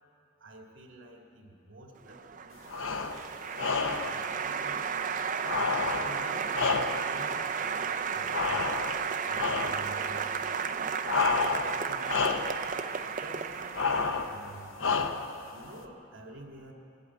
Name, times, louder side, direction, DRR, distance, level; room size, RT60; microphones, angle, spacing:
voice 1, 0.4-4.9 6.0-6.5 7.1-8.8 9.3-10.7 11.7-12.3 13.2-14.7 15.5-16.7, right 1 dB, 70° right, 1 dB, 2.1 m, -49 dB
Applause, 2.0-14.5, right 6 dB, 40° right, 0.5 m, -33 dB
sound 1, 2.7-3.2 3.6-4.2 5.4-7.2 8.3-9.1 9.4-9.9 11.0-11.8 12.0-12.6 13.7-14.4 14.8-15.4, left 5 dB, 85° left, 0.8 m, -30 dB
21.0 x 8.4 x 8.3 m, 2.9 s
head